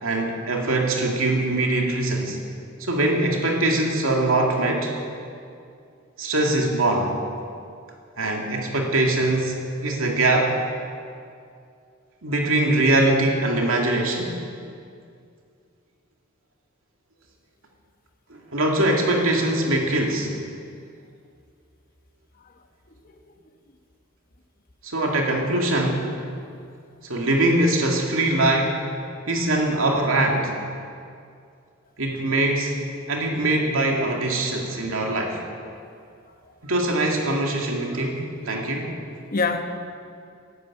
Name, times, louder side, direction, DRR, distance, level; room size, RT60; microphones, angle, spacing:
voice 1, 0.0-2.4 2.8-4.9 6.2-7.1 8.2-10.6 12.2-14.4 18.3-20.3 24.8-26.1 27.1-28.8 29.3-30.5 32.0-32.8 33.1-35.4 36.6-39.0, right 2 dB, 80° right, 0 dB, 2.4 m, -22 dB
voice 2, 35.9-36.5 39.3-39.6, left 4 dB, 45° left, 6 dB, 1.1 m, -29 dB
11.5 x 11.0 x 8.8 m, 2.4 s
head